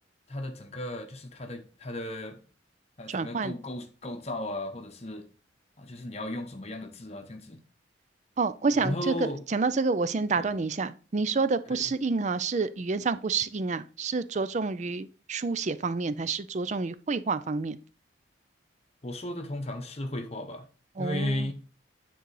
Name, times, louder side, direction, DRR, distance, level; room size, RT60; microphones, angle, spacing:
voice 1, 0.3-2.4 3.0-5.3 5.8-7.6 8.7-9.4 10.4-10.5 11.7-11.8 19.0-20.6 21.0-21.5, left 1 dB, 30° left, 0.8 m, -35 dB
voice 2, 3.1-3.6 8.4-17.8 21.0-21.5, right 4 dB, 35° right, 0.4 m, -29 dB
9.3 x 3.9 x 4.8 m
head